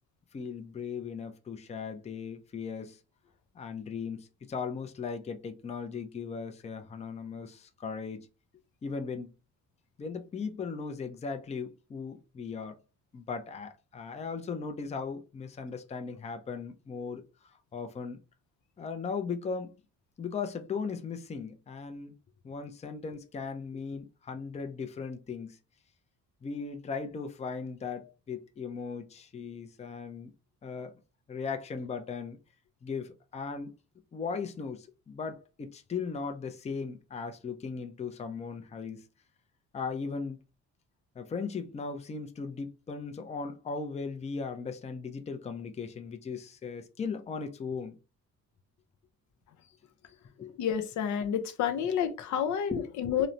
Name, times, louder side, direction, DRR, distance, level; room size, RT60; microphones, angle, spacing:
voice 1, 0.3-3.0 3.6-8.3 8.8-9.3 10.0-12.8 13.1-17.2 17.7-18.2 18.8-19.7 20.2-22.1 22.4-25.6 26.4-30.3 30.6-31.0 31.3-32.4 32.8-33.7 34.1-39.0 39.7-40.4 41.2-48.0 50.4-50.6 52.7-52.9, left 5 dB, 20° left, 0.4 m, -37 dB
voice 2, 50.6-53.3, left 8 dB, 75° left, 0.5 m, -29 dB
3.0 x 2.0 x 2.5 m
cardioid pair, 90°, 30 cm